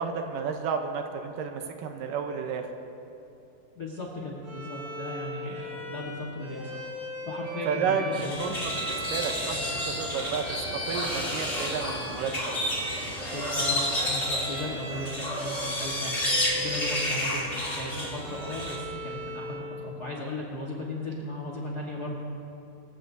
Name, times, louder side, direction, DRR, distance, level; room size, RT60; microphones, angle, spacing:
voice 1, 0.0-2.7 5.7-5.9 7.7-8.5 8.8-10.6 10.9-12.3, right 6 dB, 75° right, 5 dB, 2.3 m, -31 dB
voice 2, 3.7-6.8 7.2-8.5 13.3-16.1 16.5-22.3, left 1 dB, 80° left, -3 dB, 0.8 m, -36 dB
Bowed string instrument, 4.4-19.7, right 1 dB, 45° right, 4.3 m, -39 dB
sound 1, 8.1-18.8, left 1 dB, 20° left, 1.9 m, -31 dB
24.5 x 15.5 x 2.7 m, 2.9 s
omnidirectional pair, 4.3 m